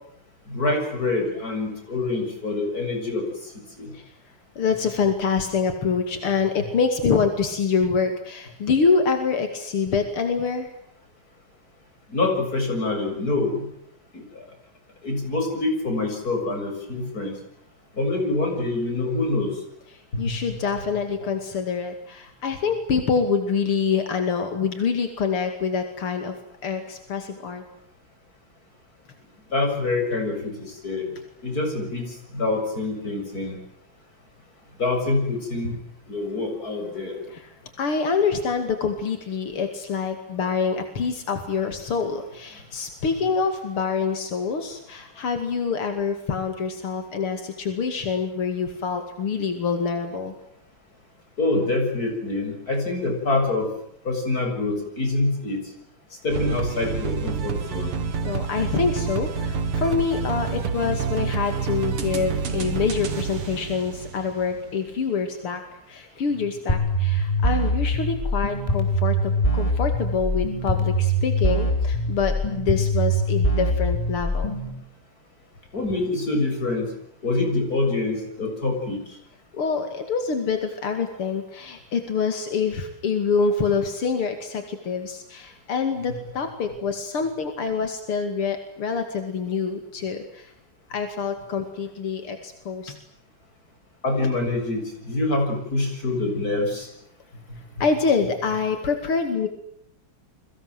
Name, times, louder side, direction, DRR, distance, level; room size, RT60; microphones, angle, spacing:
voice 1, 0.5-3.5 3.8-3.9 12.1-13.7 14.1-14.4 15.0-17.4 17.9-19.5 20.1-20.4 29.5-31.1 31.4-33.6 34.8-35.8 36.1-37.2 42.5-42.6 51.4-53.7 54.0-55.6 56.2-57.9 75.7-76.9 77.2-79.0 86.1-86.2 94.0-96.9 97.5-97.8, left 2 dB, 40° left, 3 dB, 7.6 m, -26 dB
voice 2, 4.6-10.7 19.9-26.4 26.6-27.6 37.3-37.4 37.8-50.3 58.2-65.6 65.9-74.6 79.5-90.5 90.9-93.0 97.8-99.5, left 5 dB, 85° left, 6 dB, 3.3 m, -26 dB
sound 1, 56.3-64.7, right 6 dB, 85° right, 2.8 m, -28 dB
sound 2, 66.7-74.7, equal, 15° left, 4.5 m, -23 dB
29.5 x 23.5 x 7.9 m, 0.74 s
omnidirectional pair, 2.4 m